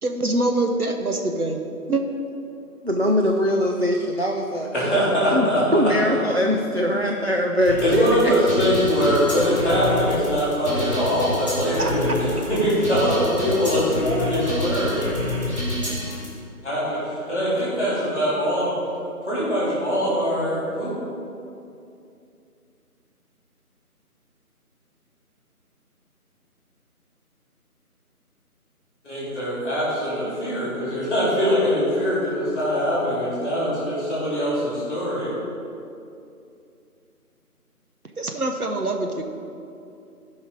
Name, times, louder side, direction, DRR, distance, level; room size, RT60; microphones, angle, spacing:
voice 1, 0.0-1.6 1.9-2.0 11.8-11.9 38.2-39.2, right 2 dB, 70° right, 4 dB, 1.1 m, -24 dB
voice 2, 2.8-4.7 5.3-5.5 5.7-8.3, equal, 45° right, 0 dB, 0.5 m, -21 dB
voice 3, 4.7-6.2 7.8-15.1 16.6-17.0 17.3-18.8 19.3-20.9 29.0-35.3, equal, 5° left, -18 dB, 2.5 m, -22 dB
sound 1, 7.7-16.3, left 1 dB, 20° right, 2.1 m, -28 dB
13.0 x 5.6 x 4.8 m, 2.6 s
figure-of-eight pair, 170°, 46 cm